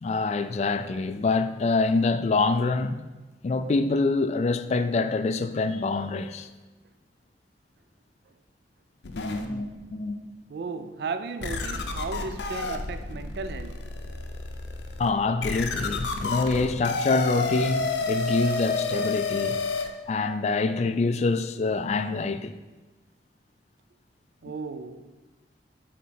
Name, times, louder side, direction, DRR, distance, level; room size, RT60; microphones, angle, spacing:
voice 1, 0.0-3.0 3.4-6.5 15.0-19.6 20.1-22.5, left 3 dB, 40° left, 0.3 m, -25 dB
sound 1, 9.0-10.2 10.8-10.9 11.4-19.9, left 3 dB, 80° left, 0.6 m, -30 dB
voice 2, 10.5-13.9 24.4-25.1, right 4 dB, 65° right, 0.4 m, -35 dB
8.3 x 4.0 x 4.3 m
head